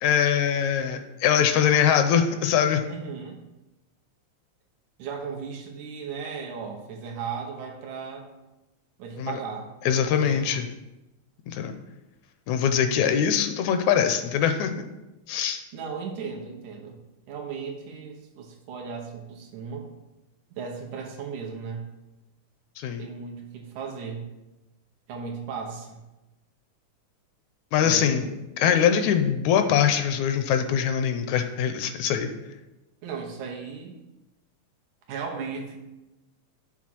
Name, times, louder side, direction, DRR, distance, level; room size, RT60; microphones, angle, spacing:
voice 1, 0.0-2.8 9.2-9.4 9.9-10.7 11.5-11.7 12.5-14.7 15.3-15.6 22.8-23.0 27.7-28.3 28.6-32.3, left 8 dB, 80° left, 7 dB, 1.8 m, -22 dB
voice 2, 2.9-3.4 5.0-8.3 9.0-10.5 15.7-17.0 17.3-19.9 20.5-21.9 23.0-24.3 25.1-26.0 27.8-28.4 33.0-34.0 35.1-35.8, right 5 dB, 85° right, 2 dB, 2.5 m, -36 dB
7.5 x 3.6 x 6.0 m, 1.0 s
omnidirectional pair, 3.4 m